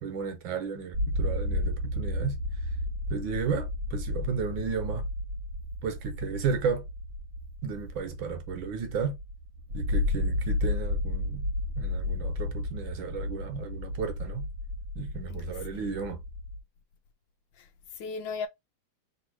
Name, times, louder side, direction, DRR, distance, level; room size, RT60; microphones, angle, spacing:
voice 1, 0.0-2.4 3.1-5.0 5.8-6.8 7.6-9.2 9.7-11.5 11.8-14.5 15.0-16.2, right 6 dB, 70° right, 1.6 m, -33 dB
sound 1, 0.9-16.6, left 2 dB, 45° right, 1.4 m, -32 dB
voice 2, 15.3-15.9 17.5-18.5, left 5 dB, 75° left, 1.2 m, -38 dB
3.4 x 3.1 x 4.5 m
omnidirectional pair, 2.3 m